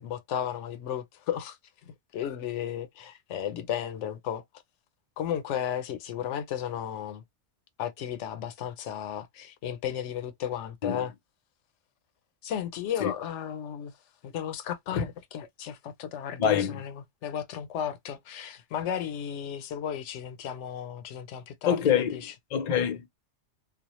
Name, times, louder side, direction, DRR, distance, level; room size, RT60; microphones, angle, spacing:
voice 1, 0.0-1.6 1.8-4.4 5.2-7.2 7.8-11.1 12.4-13.9 14.2-22.3, left 9 dB, 90° left, 0.9 m, -34 dB
voice 2, 16.4-16.8 21.7-22.2 22.5-23.1, left 8 dB, 50° left, 0.6 m, -25 dB
2.3 x 2.0 x 2.9 m
omnidirectional pair, 1.2 m